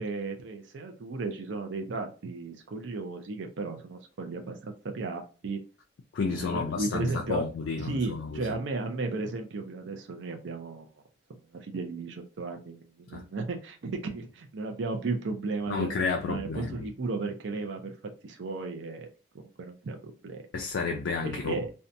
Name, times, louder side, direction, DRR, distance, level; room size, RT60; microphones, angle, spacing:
voice 1, 0.0-5.6 6.3-7.4 7.8-10.9 11.5-17.9 18.2-19.1 19.3-20.0 20.2-20.4 21.2-21.7, right 3 dB, 75° right, 0.5 m, -34 dB
voice 2, 6.1-8.5 13.1-13.2 15.7-16.7 20.5-21.6, left 4 dB, 85° left, 0.4 m, -31 dB
2.7 x 2.2 x 2.5 m
head